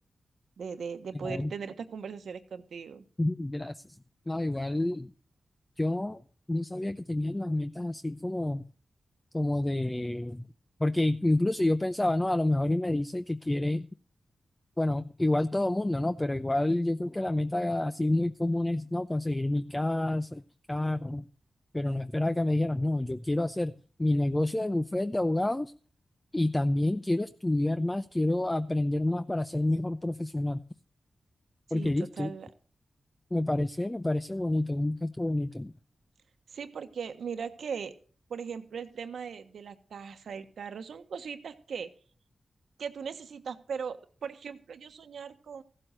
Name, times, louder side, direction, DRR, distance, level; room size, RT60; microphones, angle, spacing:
voice 1, 0.6-3.0 31.7-32.5 36.5-37.9 38.3-41.9 42.8-45.6, right 6 dB, 85° right, 9 dB, 1.2 m, -39 dB
voice 2, 1.1-1.5 3.2-3.8 4.3-5.1 5.8-6.2 6.5-8.6 9.3-10.5 10.8-13.9 14.8-20.4 20.7-21.2 21.7-25.7 26.3-30.6 31.7-32.3 33.3-35.7, left 1 dB, 20° left, 11 dB, 0.6 m, -28 dB
15.0 x 7.7 x 6.5 m, 0.43 s
cardioid pair, 50°, 0 cm